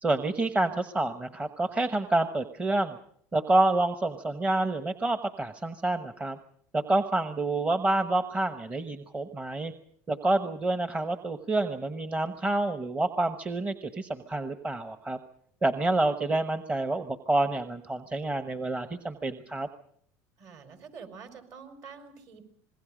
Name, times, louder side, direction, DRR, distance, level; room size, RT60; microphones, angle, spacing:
voice 1, 0.0-3.0 3.3-6.4 6.7-9.7 10.1-15.2 15.6-19.7, right 2 dB, 20° right, 8 dB, 1.1 m, -28 dB
voice 2, 20.4-22.4, right 5 dB, 45° right, 8 dB, 5.0 m, -47 dB
26.5 x 21.0 x 5.1 m, 0.66 s
supercardioid pair, 115°, 7 cm